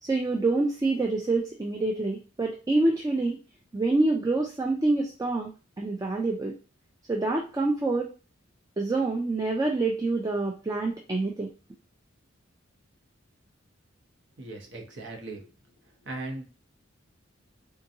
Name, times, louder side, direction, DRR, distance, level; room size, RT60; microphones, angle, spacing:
voice 1, 0.0-3.4 3.7-5.5 5.8-6.5 7.1-8.1 8.8-11.5, right 2 dB, 15° right, 2 dB, 0.3 m, -26 dB
voice 2, 14.4-15.5 16.1-16.4, right 2 dB, 60° right, 2 dB, 0.9 m, -38 dB
3.7 x 2.6 x 2.6 m, 0.34 s
head